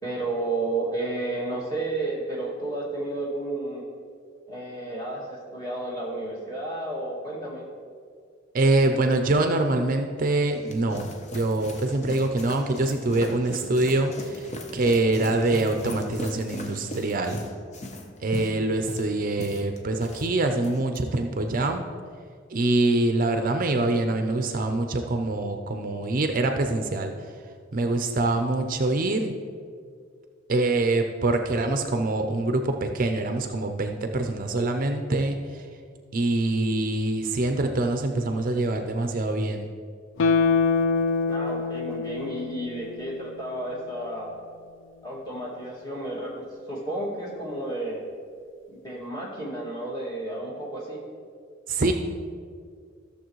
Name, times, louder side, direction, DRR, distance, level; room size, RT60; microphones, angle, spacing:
voice 1, 0.0-3.8 4.5-7.6 41.3-44.4 45.0-48.0 48.7-51.0, right 2 dB, 20° left, -5 dB, 2.1 m, -32 dB
voice 2, 8.5-17.4 18.2-21.8 22.5-27.3 27.7-29.3 30.5-35.7 36.1-39.7 51.7-51.9, right 2 dB, 45° right, 5 dB, 0.5 m, -25 dB
sound 1, 10.3-20.3 20.6-21.0, left 1 dB, 35° left, 0.8 m, -38 dB
Guitar, 40.2-43.5 43.8-43.9, left 4 dB, 75° left, 0.5 m, -25 dB
14.0 x 6.8 x 3.1 m, 2.1 s
head